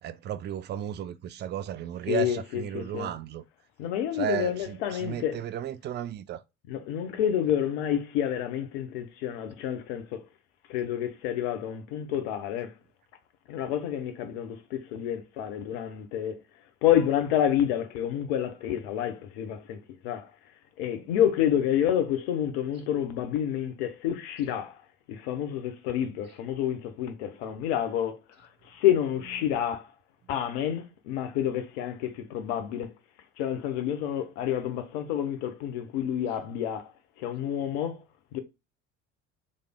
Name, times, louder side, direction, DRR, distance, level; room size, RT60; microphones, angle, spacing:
voice 1, 0.0-3.4 4.2-6.4, right 9 dB, 30° right, 0.4 m, -34 dB
voice 2, 2.1-3.1 3.8-5.4 6.7-10.2 10.7-12.7 13.5-16.4 16.8-20.3 20.8-24.7 25.1-29.9 30.3-32.9 33.4-36.9 37.2-38.0 38.3-38.4, left 10 dB, 60° left, 1.0 m, -29 dB
5.2 x 3.3 x 2.3 m
figure-of-eight pair, 60°, 36 cm